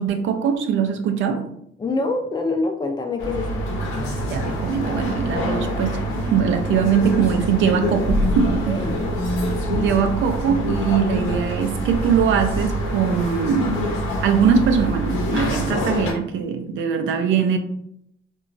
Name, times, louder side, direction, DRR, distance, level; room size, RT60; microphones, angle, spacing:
voice 1, 0.0-1.4 4.3-6.0 6.3-8.8 9.7-13.9 14.2-17.6, right 7 dB, 75° right, 5 dB, 0.4 m, -21 dB
voice 2, 1.8-3.6 8.7-9.1, left 3 dB, 20° left, 3 dB, 0.4 m, -25 dB
sound 1, 3.2-16.1, equal, 90° left, 0.7 m, -25 dB
2.9 x 2.2 x 2.5 m, 0.74 s
cardioid pair, 90°, 20 cm